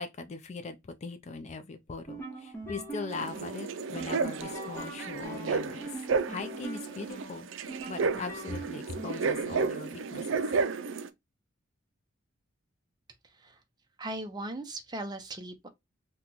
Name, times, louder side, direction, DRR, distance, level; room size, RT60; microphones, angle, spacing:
voice 1, 0.0-5.9 6.3-7.5 7.9-10.4, left 4 dB, 35° left, 0.4 m, -40 dB
sound 1, 2.0-9.4, right 2 dB, 10° left, 1.0 m, -43 dB
sound 2, 3.1-11.1, right 4 dB, 70° right, 0.4 m, -32 dB
voice 2, 13.2-13.6 14.0-15.7, right 2 dB, 20° right, 0.6 m, -38 dB
2.9 x 2.3 x 3.8 m
head